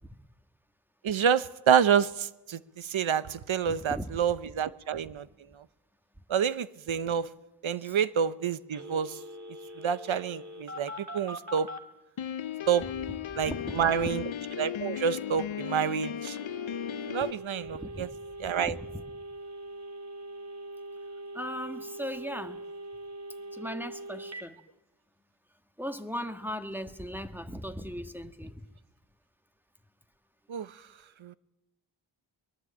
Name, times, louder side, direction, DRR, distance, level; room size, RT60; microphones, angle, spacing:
voice 1, 1.0-5.3 6.3-7.3 7.6-9.2 9.8-11.7 12.7-14.2 14.6-16.4 17.1-18.1 18.4-18.7 30.5-30.7 31.2-31.3, right 8 dB, 75° right, 15 dB, 1.0 m, -28 dB
voice 2, 3.6-4.1 7.8-8.0 13.3-13.9 17.7-18.1 18.6-19.0 21.3-22.6 23.5-24.6 25.8-28.7, equal, 5° right, 8 dB, 1.7 m, -38 dB
Telephone, 8.7-11.8 16.3-24.4, right 1 dB, 35° right, 2.9 m, -42 dB
Piano, 12.2-17.3, left 10 dB, 75° left, 0.9 m, -36 dB
23.0 x 21.0 x 8.6 m, 0.97 s
wide cardioid pair, 80°, 48 cm